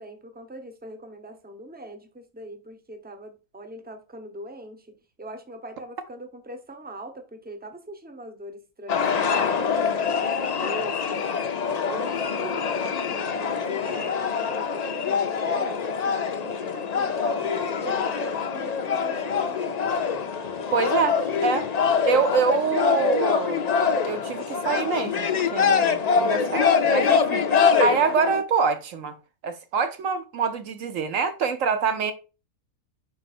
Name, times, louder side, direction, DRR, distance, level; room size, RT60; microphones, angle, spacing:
voice 1, 0.0-11.2 11.9-20.0 20.6-20.7, right 1 dB, 10° right, 0.6 m, -41 dB
sound 1, 8.9-28.4, left 6 dB, 80° left, 0.3 m, -24 dB
voice 2, 20.7-21.7 22.0-23.7 24.1-29.1 29.4-32.1, right 5 dB, 65° right, 1.2 m, -25 dB
5.2 x 4.5 x 4.2 m
omnidirectional pair, 1.5 m